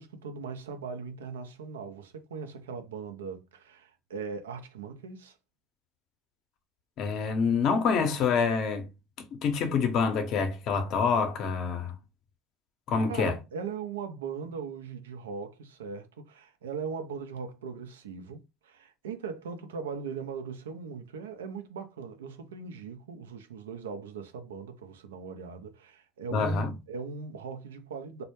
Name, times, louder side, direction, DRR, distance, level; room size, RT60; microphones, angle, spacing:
voice 1, 0.0-5.4 13.0-28.2, right 5 dB, 90° right, 0.4 m, -39 dB
voice 2, 7.0-8.9 9.4-11.9 12.9-13.3 26.3-26.7, left 5 dB, 55° left, 0.6 m, -26 dB
2.1 x 2.0 x 2.9 m
hypercardioid pair, 80°, 0 cm